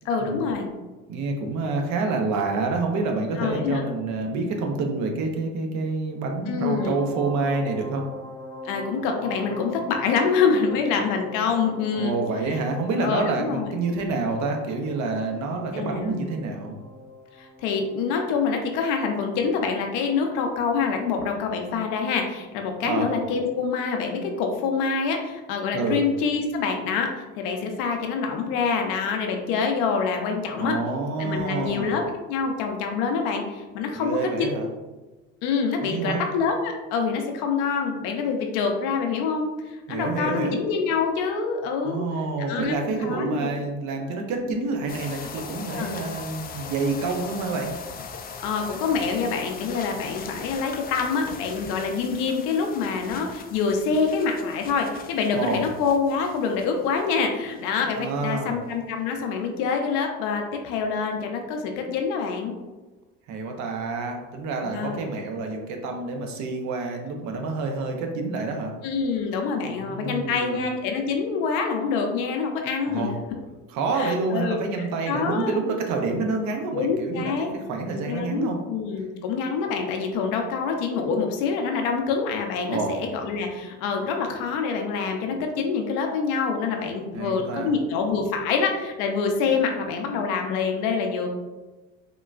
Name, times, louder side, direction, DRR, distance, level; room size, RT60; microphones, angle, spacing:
voice 1, 0.1-0.7 3.4-3.9 6.5-7.0 8.6-12.1 12.5-12.6 13.0-13.8 15.7-16.1 17.4-30.8 31.2-32.0 32.3-34.6 35.4-42.0 42.4-43.5 45.7-45.9 48.4-62.5 64.6-65.1 68.8-73.1 74.0-74.6 75.0-75.6 76.7-77.5 78.1-91.3, left 5 dB, 80° left, 3 dB, 0.6 m, -26 dB
voice 2, 1.1-8.1 11.9-16.8 22.8-23.1 25.7-26.0 30.6-31.9 33.9-34.7 35.8-36.2 39.9-40.6 41.8-47.7 55.3-55.6 58.0-58.6 63.3-68.7 69.6-70.6 72.8-73.1 73.7-78.6 82.7-83.0 87.1-87.7, right 3 dB, 65° right, 3 dB, 0.7 m, -28 dB
sound 1, 6.7-22.3 22.6-22.8, left 1 dB, 10° left, 0.8 m, -43 dB
sound 2, 44.9-57.2 57.5-57.8 58.2-58.3, left 5 dB, 30° left, 0.3 m, -40 dB
3.7 x 2.2 x 2.4 m, 1.2 s
supercardioid pair, 75°, 31 cm